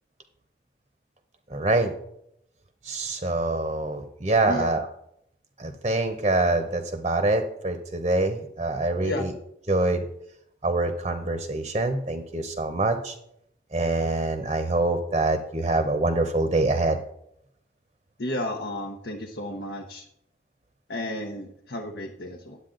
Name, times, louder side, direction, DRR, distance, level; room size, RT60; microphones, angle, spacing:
voice 1, 1.5-1.9 2.8-4.9 5.6-9.3 9.7-10.0 10.6-13.1 13.7-17.0, right 2 dB, 30° right, 7 dB, 0.7 m, -25 dB
voice 2, 18.2-20.0 20.9-22.6, left 1 dB, 70° left, 2 dB, 0.9 m, -32 dB
10.5 x 8.2 x 3.8 m, 0.75 s
head